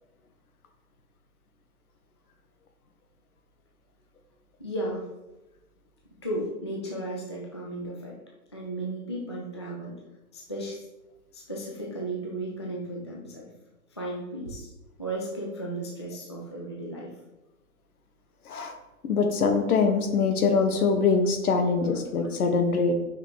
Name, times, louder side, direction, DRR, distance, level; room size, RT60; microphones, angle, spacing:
voice 1, 4.6-5.1 6.2-8.2 8.5-9.9 10.3-10.8 11.3-13.4 13.9-14.7 15.0-17.1, right 1 dB, 20° left, -3 dB, 0.3 m, -34 dB
voice 2, 19.0-22.9, left 4 dB, 70° left, 6 dB, 1.5 m, -23 dB
5.7 x 5.7 x 4.8 m, 1.0 s
hypercardioid pair, 155°, 46 cm